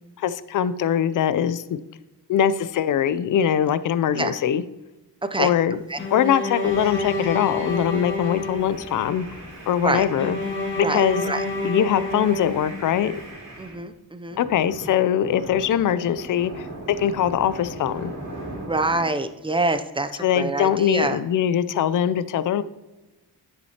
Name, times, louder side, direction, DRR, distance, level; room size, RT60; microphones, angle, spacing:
voice 1, 0.2-1.8 2.3-4.6 5.4-5.8 6.1-9.3 9.7-10.4 10.8-11.3 11.6-13.1 14.4-18.1 20.2-22.6, left 9 dB, 50° left, 14 dB, 0.4 m, -22 dB
Bowed string instrument, 6.0-9.2 10.2-13.1, left 2 dB, 30° left, 1.5 m, -29 dB
sound 1, 6.6-13.8 14.3-19.1, right 1 dB, 40° right, 2.7 m, -39 dB
voice 2, 10.8-11.4 13.6-14.4 18.7-21.2, right 2 dB, 15° right, 9 dB, 0.4 m, -26 dB
10.5 x 6.4 x 2.8 m, 1.0 s
wide cardioid pair, 150°, 41 cm